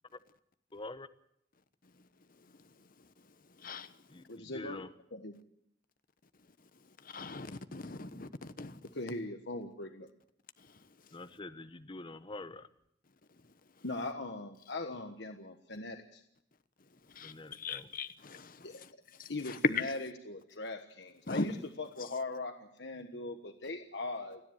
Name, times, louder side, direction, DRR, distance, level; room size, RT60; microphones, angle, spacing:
voice 1, 0.7-1.1 4.1-4.9 11.1-12.7 17.2-17.9, left 2 dB, 30° left, 1.0 m, -46 dB
voice 2, 2.6-3.1 3.6-4.0 7.0-8.8 10.6-11.1 17.1-18.9 19.2-19.9 21.3-21.5, left 3 dB, 50° left, 1.1 m, -38 dB
voice 3, 4.3-4.8 5.1-5.3 8.9-10.1 13.8-16.2 18.6-18.8 19.3-24.4, left 2 dB, 65° left, 1.4 m, -40 dB
29.5 x 10.5 x 9.2 m
head